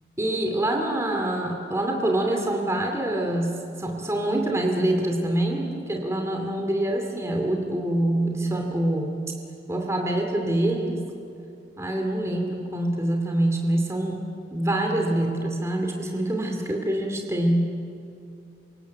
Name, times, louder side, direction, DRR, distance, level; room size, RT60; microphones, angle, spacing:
voice 1, 0.2-9.2 9.7-11.0 11.8-14.2 14.5-17.7, right 1 dB, 15° right, 2 dB, 2.6 m, -25 dB
27.0 x 25.5 x 8.2 m, 2.6 s
head